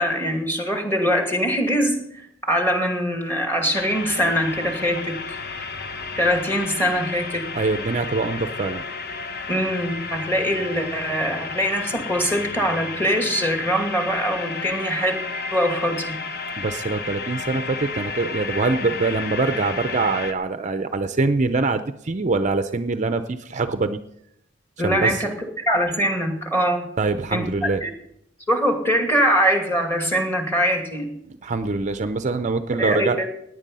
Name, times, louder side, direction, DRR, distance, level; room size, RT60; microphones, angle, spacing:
voice 1, 0.0-5.4 6.2-7.4 9.5-15.2 15.5-16.1 24.8-26.8 27.3-27.9 28.5-31.1 32.8-33.3, equal, 10° left, 3 dB, 2.5 m, -23 dB
sound 1, 3.7-20.3, left 4 dB, 55° left, 1.0 m, -32 dB
voice 2, 7.5-8.8 16.6-24.0 24.8-25.2 27.0-27.8 31.3-33.2, right 3 dB, 40° right, 9 dB, 0.6 m, -24 dB
17.5 x 9.8 x 5.5 m, 0.76 s
head